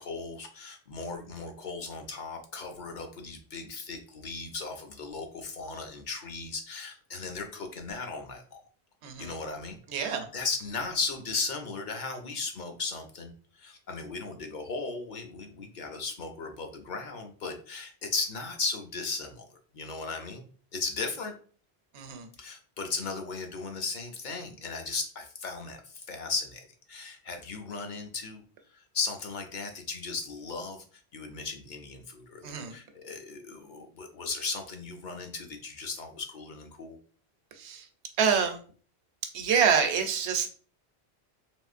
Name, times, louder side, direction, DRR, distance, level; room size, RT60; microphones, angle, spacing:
voice 1, 0.0-8.7 9.2-20.4 20.7-21.3 22.4-28.4 28.7-30.8 31.1-37.0, left 4 dB, 55° left, 5 dB, 0.7 m, -36 dB
voice 2, 9.0-9.4 9.9-10.3 21.9-22.3 32.4-32.7 37.6-37.8 38.2-38.6 39.3-40.5, right 7 dB, 85° right, 6 dB, 0.9 m, -26 dB
3.6 x 2.9 x 2.4 m, 0.42 s
omnidirectional pair, 1.1 m